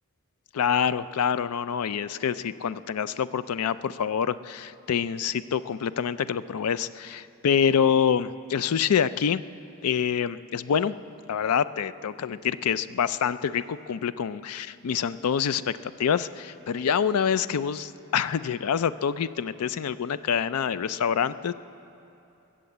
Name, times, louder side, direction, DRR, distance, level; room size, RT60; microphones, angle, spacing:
voice 1, 0.5-9.4 9.8-10.9 11.3-21.5, left 7 dB, 90° left, 15 dB, 0.4 m, -26 dB
21.5 x 7.5 x 8.1 m, 2.8 s
head